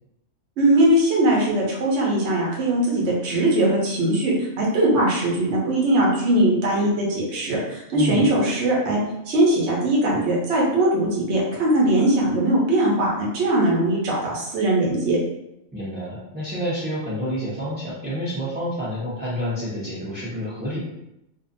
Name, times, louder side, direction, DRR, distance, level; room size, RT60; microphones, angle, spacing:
voice 1, 0.6-9.0 9.3-15.2, right 1 dB, 55° right, -3 dB, 1.0 m, -20 dB
voice 2, 7.9-8.3 15.7-20.8, equal, 10° right, -9 dB, 0.5 m, -28 dB
2.6 x 2.4 x 2.5 m, 0.85 s
omnidirectional pair, 1.5 m